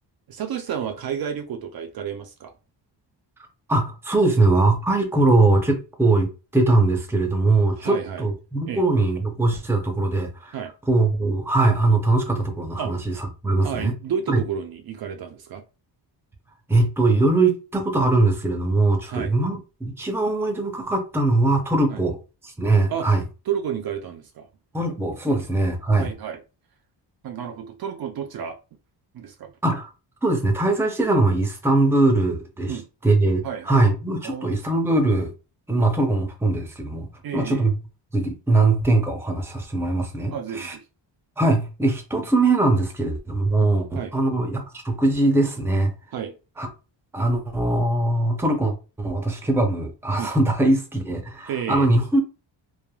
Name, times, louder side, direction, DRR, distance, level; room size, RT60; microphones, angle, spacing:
voice 1, 0.3-2.5 7.8-8.2 8.7-8.8 10.5-10.7 12.8-13.1 13.6-15.6 19.1-19.3 21.9-22.0 22.9-23.1 23.5-24.5 25.3-25.4 26.0-26.4 27.2-28.6 29.1-29.5 32.7-32.9 33.4-33.8 34.2-34.6 37.2-37.7 40.3-40.8 43.9-44.1 46.1-46.4 50.2-50.3 51.5-51.9, right 8 dB, 55° right, 0.5 m, -31 dB
voice 2, 3.7-6.3 6.5-10.6 10.9-13.1 13.4-13.9 14.3-14.4 16.7-22.2 22.4-23.2 24.7-26.1 29.6-29.9 30.2-35.3 35.7-37.1 37.3-37.7 38.1-40.8 41.4-45.9 46.6-46.7 47.1-52.2, right 2 dB, 5° right, 0.6 m, -21 dB
3.3 x 2.1 x 2.2 m
cardioid pair, 105°, 44 cm